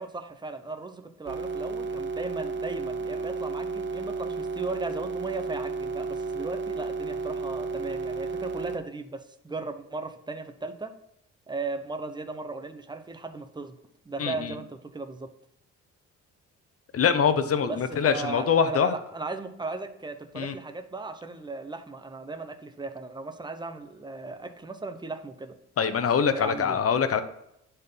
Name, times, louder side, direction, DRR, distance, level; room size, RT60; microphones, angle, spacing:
voice 1, 0.0-10.9 11.5-13.8 14.0-15.3 17.6-25.5 26.2-26.8, right 3 dB, 15° right, 8 dB, 1.0 m, -37 dB
sound 1, 1.3-8.8, right 4 dB, 40° right, 0.9 m, -32 dB
voice 2, 14.2-14.6 16.9-18.9 20.3-20.5 25.8-27.2, left 7 dB, 50° left, 10 dB, 1.0 m, -24 dB
10.5 x 4.6 x 5.7 m, 0.79 s
cardioid pair, 90°, 30 cm